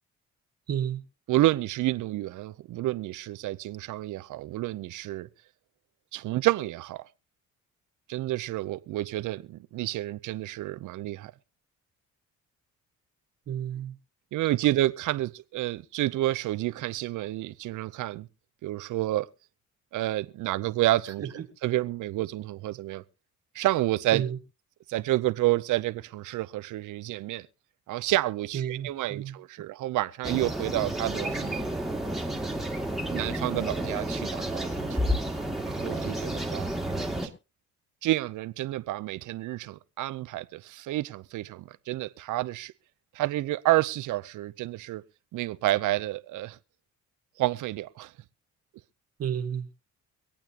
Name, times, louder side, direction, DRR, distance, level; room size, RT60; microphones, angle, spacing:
voice 1, 0.7-1.0 13.5-14.0 21.2-21.5 24.1-24.4 28.5-29.4 49.2-49.7, right 9 dB, 55° right, 1.9 m, -31 dB
voice 2, 1.3-5.3 6.1-7.1 8.1-11.3 14.3-18.3 18.6-19.3 19.9-21.2 21.6-23.0 23.5-24.2 24.9-27.5 27.9-31.6 33.1-35.0 35.7-36.7 38.0-42.7 43.1-45.0 45.3-46.6 47.4-48.1, right 16 dB, 80° right, 0.7 m, -29 dB
sound 1, 30.2-37.3, right 1 dB, ahead, 2.4 m, -31 dB
24.5 x 8.8 x 2.9 m
cardioid pair, 90°, 30 cm